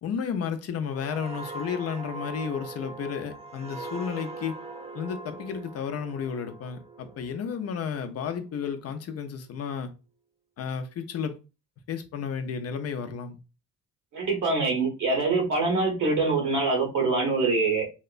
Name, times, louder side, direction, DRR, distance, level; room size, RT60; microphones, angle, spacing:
voice 1, 0.0-4.6 4.9-9.9 10.6-11.4 11.9-13.4, left 7 dB, 55° left, 0.5 m, -32 dB
sound 1, 0.9-8.4 8.8-9.0, right 3 dB, 20° right, 0.4 m, -41 dB
voice 2, 14.1-17.8, right 3 dB, 75° right, 1.3 m, -24 dB
2.8 x 2.1 x 2.4 m
cardioid pair, 90°, 30 cm